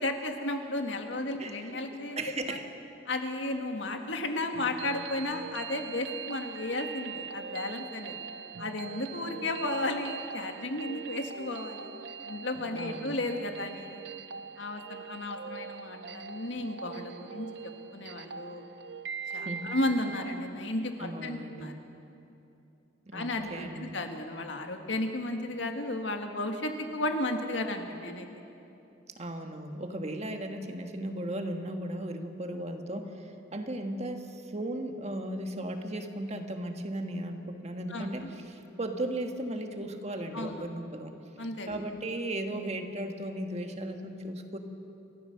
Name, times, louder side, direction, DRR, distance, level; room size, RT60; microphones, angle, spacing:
voice 1, 0.0-2.2 3.1-8.2 8.6-11.9 12.3-14.0 14.6-18.6 19.3-21.7 23.1-28.3 37.9-38.3 40.3-40.6 41.4-41.8, left 2 dB, 80° left, 4 dB, 1.9 m, -34 dB
voice 2, 1.4-2.6 12.7-13.2 19.3-19.7 21.0-21.7 23.1-24.0 29.2-41.2 41.7-44.6, right 1 dB, 35° right, 5 dB, 1.5 m, -36 dB
sound 1, 4.5-20.5, right 6 dB, 60° right, 0.6 m, -42 dB
29.5 x 14.0 x 6.8 m, 2.8 s
head